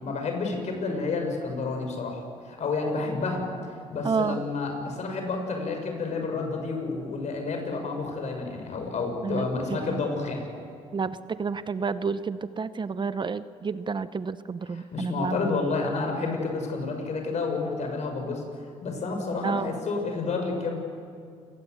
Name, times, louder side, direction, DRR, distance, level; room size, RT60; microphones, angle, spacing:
voice 1, 0.0-3.4 3.9-10.4 14.7-18.4 18.8-20.8, left 3 dB, 60° left, 3 dB, 6.5 m, -30 dB
voice 2, 4.0-4.4 9.2-10.0 10.9-15.4 19.4-19.7, right 5 dB, 35° right, 13 dB, 0.9 m, -30 dB
28.5 x 19.0 x 8.0 m, 2.3 s
cardioid pair, 80°, 14 cm